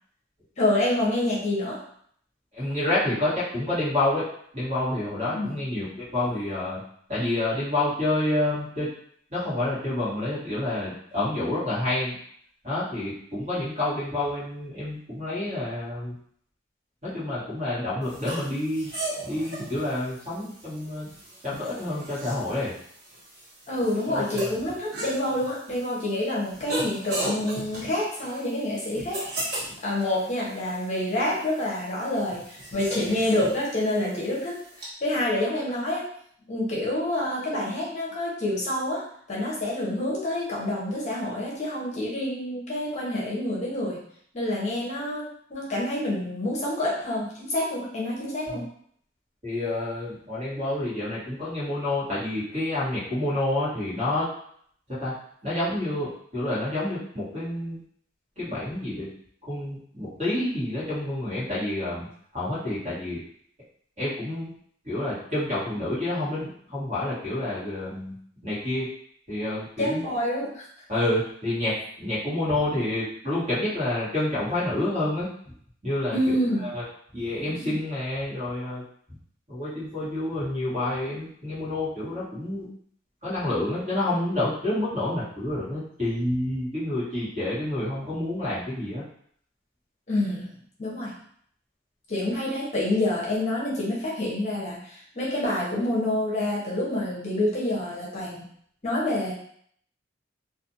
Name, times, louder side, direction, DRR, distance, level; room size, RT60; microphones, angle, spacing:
voice 1, 0.6-1.8 5.3-5.5 23.7-29.3 29.8-34.6 35.0-36.1 36.5-39.0 39.3-44.0 44.3-48.7 69.8-70.7 76.1-76.7 77.5-77.8 90.1-91.1 92.1-98.5 98.8-99.3, left 1 dB, 35° left, -5 dB, 0.7 m, -27 dB
voice 2, 2.5-4.3 4.5-6.8 7.1-8.9 9.3-12.1 12.6-16.1 17.0-18.9 19.2-21.1 21.4-22.7 24.1-24.2 49.4-54.3 55.0-55.1 55.4-57.8 58.4-59.1 59.5-62.1 62.3-63.2 64.0-64.5 64.8-68.1 68.4-68.9 69.3-70.0 70.9-75.3 75.8-76.3 76.7-76.8 77.1-78.8 79.5-82.7 83.2-89.0, left 1 dB, 35° right, -9 dB, 1.4 m, -28 dB
sound 1, 18.0-34.9, right 1 dB, 55° right, 1.0 m, -37 dB
2.5 x 2.4 x 2.7 m, 0.63 s
head